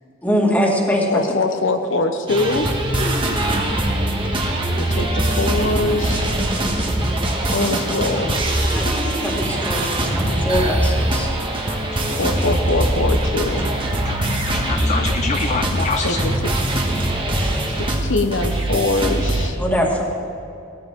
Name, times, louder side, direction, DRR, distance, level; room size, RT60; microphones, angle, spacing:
voice 1, 0.2-1.1 8.7-8.9 9.2-11.3 19.6-20.0, equal, 10° left, -2 dB, 2.2 m, -21 dB
voice 2, 1.1-2.7 2.9-3.1 4.8-6.3 7.5-8.4 12.1-13.7 16.0-16.5 17.8-19.6, left 2 dB, 75° left, 6 dB, 1.0 m, -23 dB
sound 1, 2.3-19.5, right 1 dB, 25° right, 1.6 m, -22 dB
voice 3, 14.1-16.2, left 5 dB, 35° left, 8 dB, 0.5 m, -26 dB
19.0 x 14.0 x 3.8 m, 2.7 s
head